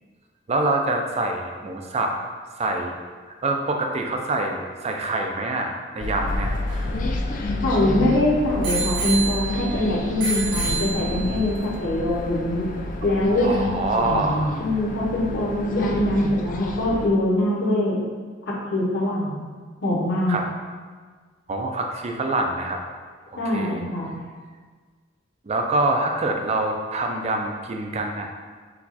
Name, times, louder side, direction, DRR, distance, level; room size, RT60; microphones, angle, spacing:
voice 1, 0.5-2.1 2.6-2.9 3.4-6.5 13.0-13.1 13.4-14.6 20.3-20.4 21.5-22.8 23.3-23.8 25.5-28.3, right 2 dB, 35° right, 3 dB, 0.4 m, -25 dB
sound 1, 6.0-17.1, left 2 dB, 45° left, 0.3 m, -29 dB
Bicycle bell, 6.3-8.0 8.6-9.8 10.2-11.5 12.2-12.3, right 5 dB, 75° right, 1.1 m, -29 dB
voice 2, 7.6-12.7 13.0-13.5 14.6-18.0 18.7-19.4 19.8-20.4 23.4-24.2, left 1 dB, 65° left, -5 dB, 1.0 m, -23 dB
4.5 x 2.3 x 4.0 m, 1.5 s
head